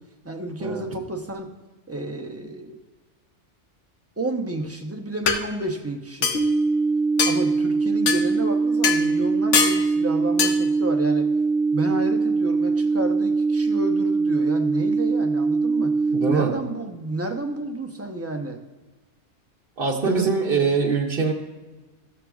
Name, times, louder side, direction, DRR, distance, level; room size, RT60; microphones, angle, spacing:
voice 1, 0.2-1.5 1.9-2.8 4.2-6.5 7.2-11.3 11.7-15.9 16.3-18.6 20.0-20.4, right 2 dB, 15° right, 2 dB, 0.6 m, -31 dB
sound 1, 4.6-4.7 5.3-5.4 6.2-6.5 7.2-7.4 8.1-8.2 8.8-9.0 9.5-9.8 10.4-10.6, left 6 dB, 80° left, 1.1 m, -21 dB
sound 2, 6.3-16.4, right 4 dB, 55° left, 1.2 m, -22 dB
voice 2, 16.1-16.6 19.8-21.3, right 5 dB, 55° right, -3 dB, 1.0 m, -23 dB
14.0 x 7.4 x 2.3 m, 1.2 s
omnidirectional pair, 1.2 m